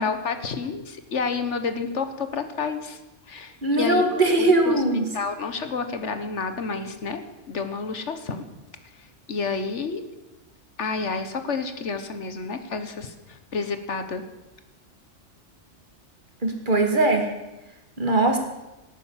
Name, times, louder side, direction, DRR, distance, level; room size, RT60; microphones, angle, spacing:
voice 1, 0.0-3.0 3.3-4.8 5.1-7.2 7.5-8.5 9.3-10.0 10.8-14.2, left 4 dB, 70° left, 9 dB, 1.6 m, -30 dB
voice 2, 3.6-5.1 16.4-17.3 18.0-18.4, right 2 dB, 40° right, 4 dB, 2.3 m, -20 dB
17.5 x 9.1 x 7.3 m, 1.0 s
omnidirectional pair, 1.2 m